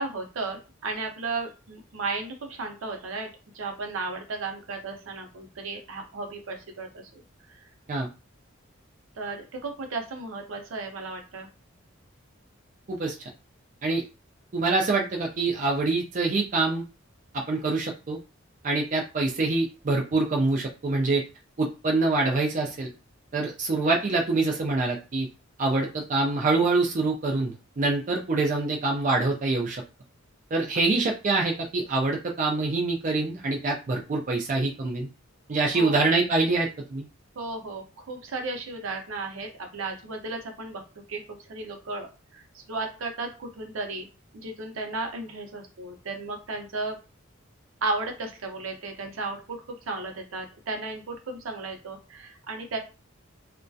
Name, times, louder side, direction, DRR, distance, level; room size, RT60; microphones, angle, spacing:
voice 1, 0.0-3.3 3.5-7.2 7.5-7.6 9.2-11.5 35.7-36.0 37.4-40.8 41.1-44.1 44.3-47.0 47.8-52.8, right 3 dB, 80° right, 3 dB, 0.6 m, -34 dB
voice 2, 14.5-16.8 17.3-18.2 18.6-21.2 21.6-22.9 23.3-25.3 25.6-29.8 30.5-35.1 35.5-37.0, right 3 dB, 40° right, 0 dB, 0.4 m, -25 dB
2.3 x 2.1 x 2.6 m, 0.31 s
head